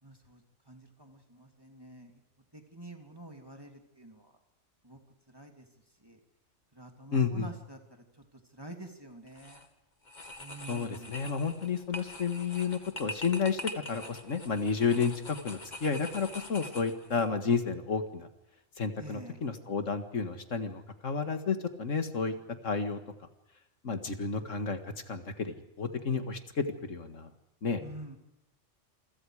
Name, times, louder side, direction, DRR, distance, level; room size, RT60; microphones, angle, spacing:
voice 1, 0.0-2.2 2.5-4.4 4.8-5.0 5.3-5.7 6.0-6.2 6.7-9.6 10.4-11.3 19.0-19.4 27.8-28.2, right 2 dB, 20° right, 3 dB, 3.1 m, -48 dB
voice 2, 7.1-7.5 10.7-13.6 13.9-18.3 18.8-22.3 22.6-23.0 23.8-24.8 25.1-27.3 27.6-27.8, left 5 dB, 75° left, 7 dB, 2.3 m, -31 dB
sound 1, 9.3-9.7 10.0-17.3, left 1 dB, 35° left, 2.2 m, -44 dB
28.0 x 25.0 x 4.9 m, 0.91 s
omnidirectional pair, 1.3 m